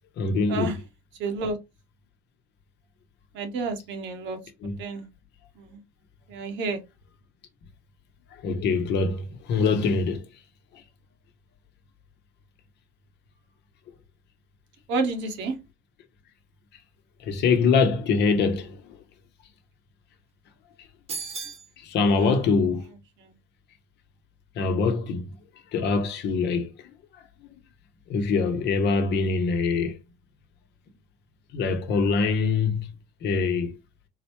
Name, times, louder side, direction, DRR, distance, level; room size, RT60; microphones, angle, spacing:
voice 1, 0.2-0.7 4.6-4.8 8.4-10.2 17.2-18.8 21.8-22.9 24.6-25.3 25.7-26.7 28.1-30.0 31.5-32.9 33.2-33.7, left 4 dB, 60° left, 0.9 m, -23 dB
voice 2, 1.2-1.6 3.3-4.4 4.8-5.1 5.6-5.8 6.3-6.8 14.9-15.6 22.0-22.4 23.2-23.3, right 3 dB, 70° right, 1.1 m, -30 dB
sound 1, 21.1-21.7, right 4 dB, 30° right, 1.0 m, -34 dB
3.9 x 2.1 x 3.0 m
cardioid pair, 105°, 20 cm